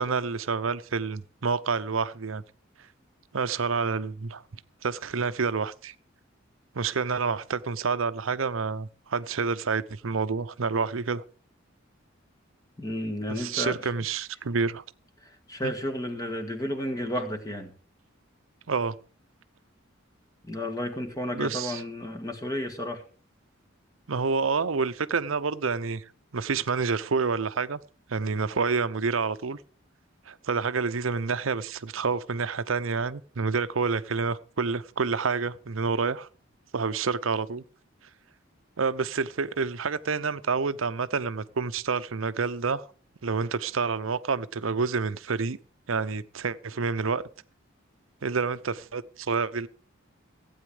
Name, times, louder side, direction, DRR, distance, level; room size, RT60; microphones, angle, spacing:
voice 1, 0.0-2.4 3.3-4.4 4.8-5.9 6.7-11.2 13.3-14.8 15.6-15.7 18.7-19.0 21.3-21.8 24.1-26.0 26.3-27.8 28.1-29.6 30.3-36.3 36.7-37.6 38.8-42.9 43.2-45.6 45.9-47.2 48.2-49.7, right 5 dB, 90° right, 0.7 m, -28 dB
voice 2, 12.8-13.9 15.2-17.7 20.5-23.0, left 1 dB, 20° left, 1.8 m, -32 dB
16.0 x 8.8 x 4.9 m
head